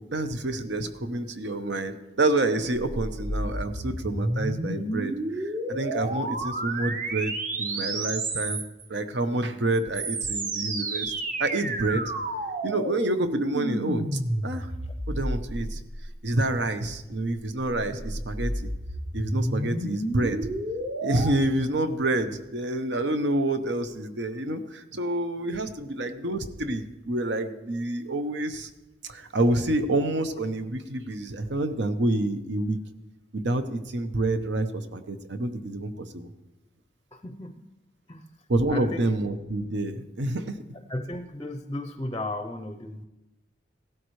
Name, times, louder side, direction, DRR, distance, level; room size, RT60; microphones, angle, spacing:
voice 1, 0.1-5.1 5.4-8.6 8.9-11.1 11.4-12.1 12.6-14.7 15.1-15.8 16.2-18.7 19.1-20.4 21.0-28.7 29.0-32.8 33.3-36.3 38.5-40.6, right 2 dB, 70° right, 9 dB, 0.9 m, -28 dB
sound 1, 2.7-8.9 9.7-16.3 17.4-21.3, right 1 dB, 45° right, 1.1 m, -31 dB
voice 2, 37.1-37.6 38.1-38.2 38.7-39.0 40.9-43.1, left 1 dB, 20° left, 7 dB, 0.6 m, -34 dB
16.5 x 12.5 x 3.2 m, 1.0 s
head